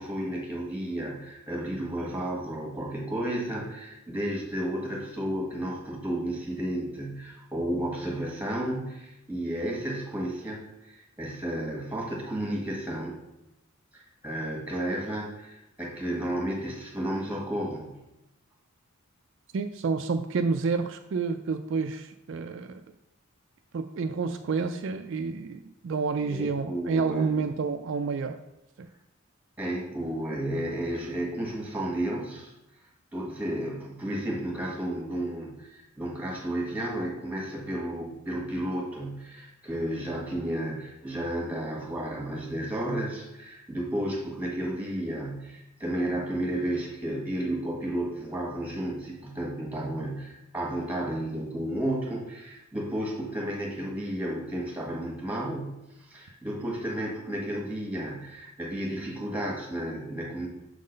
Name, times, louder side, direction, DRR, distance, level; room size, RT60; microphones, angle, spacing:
voice 1, 0.0-13.2 13.9-18.0 26.3-27.4 29.6-32.5 33.1-60.5, right 1 dB, 5° right, -3 dB, 1.5 m, -32 dB
voice 2, 19.5-22.8 23.7-28.4 28.8-28.9, right 4 dB, 60° right, 7 dB, 0.3 m, -29 dB
6.5 x 3.8 x 5.2 m, 0.92 s
head